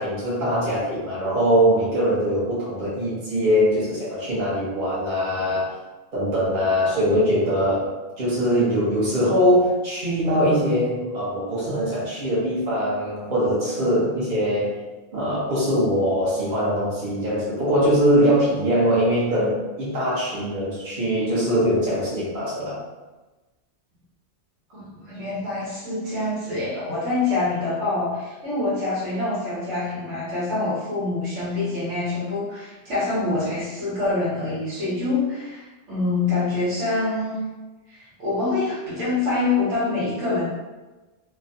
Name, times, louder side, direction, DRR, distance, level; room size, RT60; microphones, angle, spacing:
voice 1, 0.0-5.7 6.1-7.9 8.2-14.8 15.1-22.8, equal, 45° right, -9 dB, 1.1 m, -22 dB
voice 2, 24.7-37.5 37.9-40.5, left 3 dB, 70° right, -8 dB, 1.3 m, -25 dB
3.0 x 2.2 x 2.6 m, 1.2 s
omnidirectional pair, 1.2 m